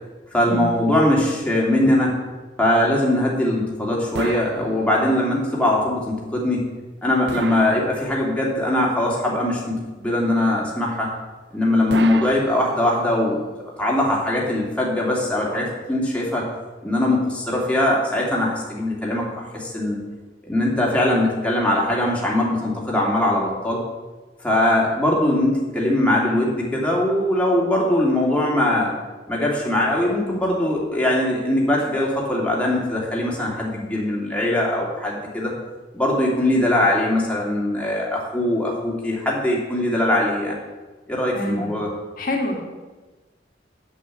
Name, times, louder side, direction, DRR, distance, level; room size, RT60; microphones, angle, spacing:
voice 1, 0.3-2.2 2.6-6.6 7.0-11.1 11.5-13.4 13.8-16.4 16.8-20.0 20.5-23.8 24.4-28.9 29.3-35.5 35.9-40.6 41.1-41.9, left 1 dB, 5° left, -4 dB, 2.7 m, -21 dB
sound 1, 4.1-5.3 7.3-8.5 11.9-13.2, right 4 dB, 70° right, 0.6 m, -32 dB
voice 2, 42.2-42.6, left 1 dB, 50° left, 0 dB, 2.1 m, -25 dB
8.4 x 7.9 x 8.4 m, 1.2 s
head